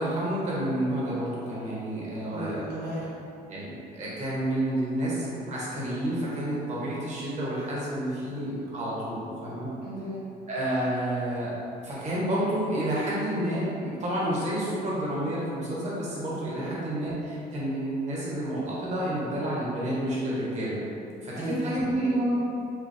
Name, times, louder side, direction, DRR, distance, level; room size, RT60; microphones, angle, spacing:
voice 1, 0.0-2.6 3.5-9.7 10.5-11.5 11.8-20.8 21.2-22.3, right 1 dB, 45° right, -7 dB, 1.4 m, -29 dB
voice 2, 2.3-3.3 9.8-10.2 16.6-16.8 21.3-21.7, right 1 dB, 75° right, -8 dB, 1.4 m, -36 dB
5.0 x 2.3 x 3.2 m, 2.7 s
cardioid pair, 110°, 17 cm